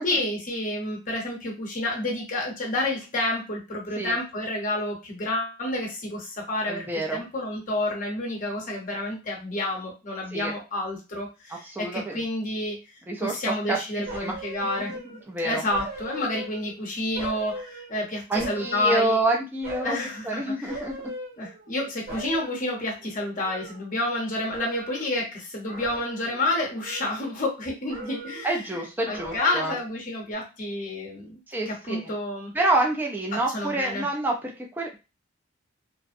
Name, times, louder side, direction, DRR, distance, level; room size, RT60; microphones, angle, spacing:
voice 1, 0.0-6.8 7.1-12.8 13.2-14.9 15.4-19.2 19.8-20.7 21.4-28.6 29.1-32.5 33.3-34.1, left 1 dB, 35° left, -1 dB, 0.8 m, -29 dB
voice 2, 6.7-7.3 10.3-10.5 11.5-12.2 13.1-13.4 13.7-13.8 14.2-14.4 15.3-15.6 18.3-20.0 20.2-20.9 28.4-29.8 31.5-32.1 32.5-35.1, right 2 dB, 10° right, 0 dB, 0.3 m, -27 dB
sound 1, 14.1-15.3 15.7-16.8 17.2-19.3 19.6-20.2 20.7-21.8 22.1-24.2 24.5-25.2 25.6-26.5 26.8-27.6 27.9-28.6 29.0-29.9 30.2-30.3, right 2 dB, 40° right, 0.7 m, -39 dB
2.5 x 2.0 x 2.5 m, 0.29 s
head